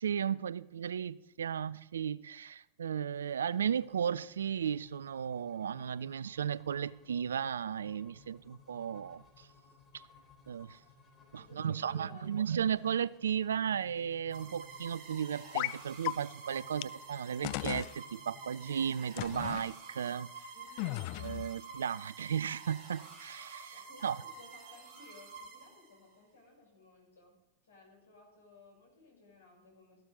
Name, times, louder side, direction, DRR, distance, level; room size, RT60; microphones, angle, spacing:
voice 1, 0.0-9.5 10.5-10.8 11.3-20.5 21.2-23.7 24.0-24.2, right 8 dB, 65° right, 21 dB, 0.3 m, -35 dB
sound 1, 3.1-19.8, left 4 dB, 25° left, 3.9 m, -61 dB
voice 2, 11.4-12.3 20.5-21.0 23.7-27.3 27.6-30.1, left 2 dB, 70° left, -1 dB, 6.0 m, -58 dB
sound 2, 14.3-26.1, right 4 dB, 35° right, 4.0 m, -50 dB
sound 3, 15.5-15.8 16.0-16.1 16.8-16.9 17.4-17.9 19.2-19.6 20.8-21.5, left 20 dB, 45° left, 0.3 m, -35 dB
14.5 x 12.5 x 3.9 m, 0.94 s
figure-of-eight pair, 90°, 0 cm